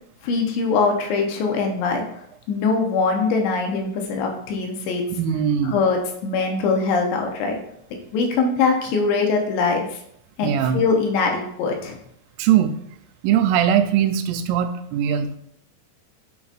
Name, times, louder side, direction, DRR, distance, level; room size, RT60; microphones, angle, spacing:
voice 1, 0.2-2.0 2.5-5.0 5.7-7.6 8.1-9.9 10.4-12.0, left 4 dB, 75° left, 2 dB, 3.0 m, -22 dB
voice 2, 5.1-5.8 10.4-10.8 12.4-12.7 13.2-15.4, right 9 dB, 90° right, 9 dB, 3.3 m, -20 dB
9.8 x 6.9 x 2.6 m, 0.70 s
omnidirectional pair, 5.6 m